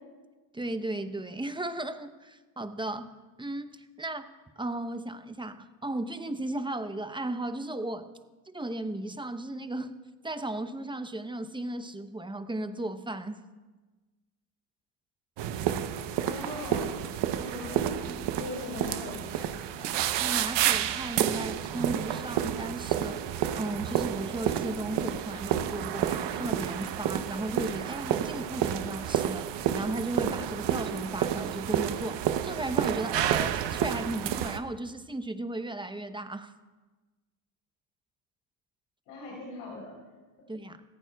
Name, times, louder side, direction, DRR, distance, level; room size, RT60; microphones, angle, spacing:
voice 1, 0.5-4.2 4.6-8.1 8.5-9.9 10.2-13.4 18.1-18.2 20.2-36.5 40.5-40.8, right 2 dB, 10° right, 9 dB, 0.8 m, -35 dB
sound 1, 15.4-34.6, right 10 dB, 65° right, 0.9 m, -30 dB
voice 2, 16.2-16.9 17.3-17.9 18.4-19.5 19.7-20.0 39.1-39.9, left 2 dB, 90° left, -4 dB, 3.9 m, -40 dB
19.0 x 14.5 x 2.3 m, 1.2 s
supercardioid pair, 80°, 46 cm